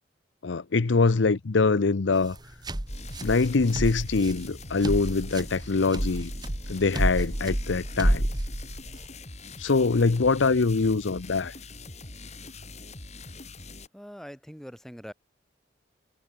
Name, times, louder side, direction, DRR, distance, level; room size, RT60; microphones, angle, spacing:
voice 1, 0.4-2.4 3.2-6.3 6.7-8.3 9.6-11.5, left 4 dB, 85° left, 0.7 m, -24 dB
sound 1, 2.1-9.1, right 1 dB, 20° right, 1.2 m, -30 dB
sound 2, 2.9-13.9, left 3 dB, 35° left, 6.6 m, -43 dB
voice 2, 13.9-15.1, equal, ahead, 4.5 m, -43 dB
head